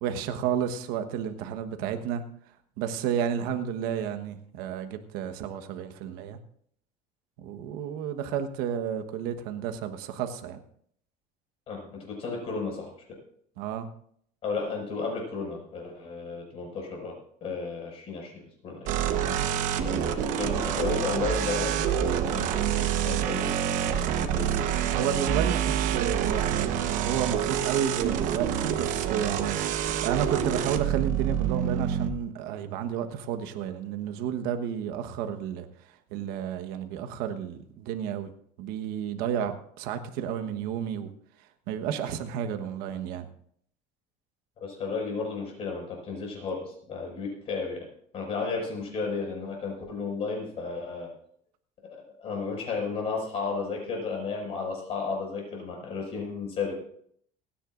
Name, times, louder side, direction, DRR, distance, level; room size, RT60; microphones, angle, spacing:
voice 1, 0.0-2.2 2.8-6.4 7.4-10.6 13.6-13.9 24.9-29.6 30.0-35.7 36.1-38.3 38.6-41.1 41.7-43.3, right 9 dB, 80° right, 8 dB, 1.3 m, -31 dB
voice 2, 11.7-12.9 14.4-17.1 17.4-18.3 18.6-18.9 19.8-24.5 44.6-47.9 48.1-51.1 52.2-56.7, left 4 dB, 40° left, 0 dB, 5.8 m, -33 dB
sound 1, 18.9-32.1, right 9 dB, 55° right, 1.2 m, -27 dB
29.0 x 10.0 x 2.6 m, 0.65 s
cardioid pair, 165°, 15 cm